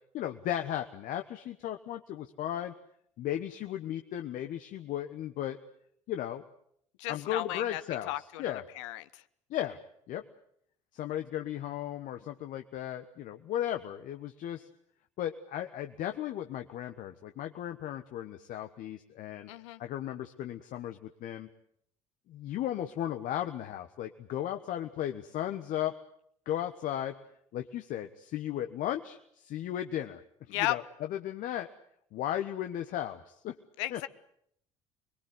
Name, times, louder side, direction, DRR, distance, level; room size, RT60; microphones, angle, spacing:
voice 1, 0.1-2.7 3.2-5.6 6.1-6.4 7.1-8.1 8.4-8.6 9.5-9.8 10.1-10.2 10.9-14.7 15.2-19.5 19.8-21.5 22.3-26.0 26.4-27.1 27.5-30.2 30.5-30.8 31.1-31.7 32.1-33.6 33.9-34.0, left 11 dB, 55° left, 6 dB, 1.3 m, -35 dB
voice 2, 7.0-9.2 19.5-19.8 30.5-30.8 33.8-34.1, left 16 dB, 75° left, 14 dB, 1.0 m, -34 dB
25.5 x 21.5 x 8.3 m, 0.70 s
hypercardioid pair, 60°, 16 cm